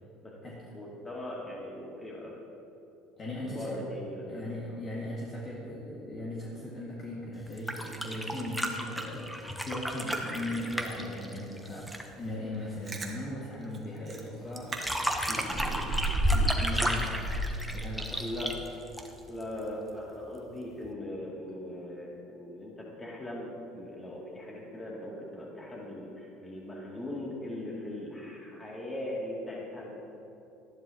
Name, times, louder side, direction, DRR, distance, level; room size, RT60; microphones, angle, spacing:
voice 1, 0.7-2.3 3.4-4.8 18.2-18.5 19.3-30.0, left 1 dB, 20° left, -3 dB, 2.6 m, -40 dB
voice 2, 3.2-3.8 4.3-17.3 17.7-18.2, left 1 dB, 35° left, -6 dB, 1.9 m, -38 dB
sound 1, 7.5-12.1 14.6-19.4 20.8-20.9, equal, ahead, 0.9 m, -33 dB
Chewing mastication, 12.6-13.1 13.7-13.8 14.1-14.3 14.7-14.8 15.1-16.6 17.0-18.2 18.6-18.7, right 1 dB, 30° right, 1.4 m, -31 dB
12.5 x 10.5 x 3.0 m, 2.9 s
supercardioid pair, 85°, 0 cm